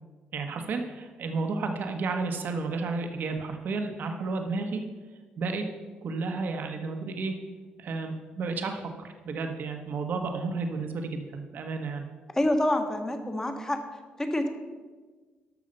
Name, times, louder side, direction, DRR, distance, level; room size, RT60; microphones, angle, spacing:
voice 1, 0.3-4.8 5.4-5.6 6.0-7.4 7.8-12.1, right 3 dB, 60° right, 5 dB, 1.3 m, -32 dB
voice 2, 12.3-13.8 14.2-14.5, left 1 dB, 15° left, 6 dB, 1.3 m, -26 dB
12.0 x 6.6 x 5.5 m, 1.4 s
cardioid pair, 115°, 4 cm